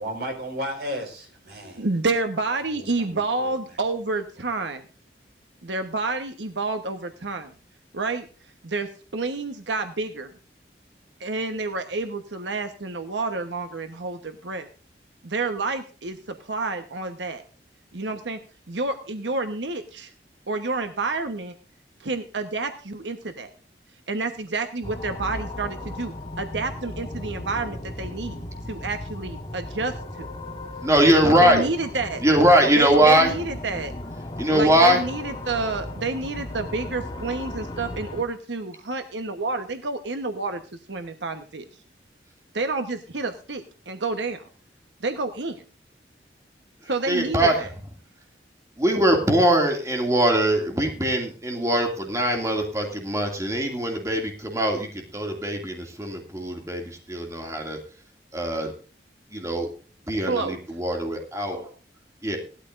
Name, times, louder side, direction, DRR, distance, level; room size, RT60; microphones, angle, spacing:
voice 1, 0.0-1.9 2.6-3.8, equal, 60° right, 3 dB, 4.6 m, -34 dB
voice 2, 1.8-4.8 5.6-7.5 7.9-8.3 8.6-10.3 11.2-14.7 15.2-17.4 17.9-18.4 18.7-20.1 20.5-21.5 22.0-23.5 24.1-30.3 31.4-32.2 32.8-33.9 34.5-40.6 40.9-41.6 42.5-44.5 45.0-45.6 46.9-47.7 60.3-60.6, right 3 dB, 90° right, 7 dB, 1.2 m, -29 dB
sound 1, 24.8-38.2, left 1 dB, 25° left, 1.8 m, -36 dB
voice 3, 30.8-31.7 32.2-33.3 34.4-35.0 46.8-47.7 48.8-57.8 58.3-58.7 59.3-59.7 60.1-61.7 62.2-62.4, right 1 dB, 15° right, 2 dB, 2.4 m, -21 dB
18.0 x 12.5 x 2.6 m, 0.38 s
head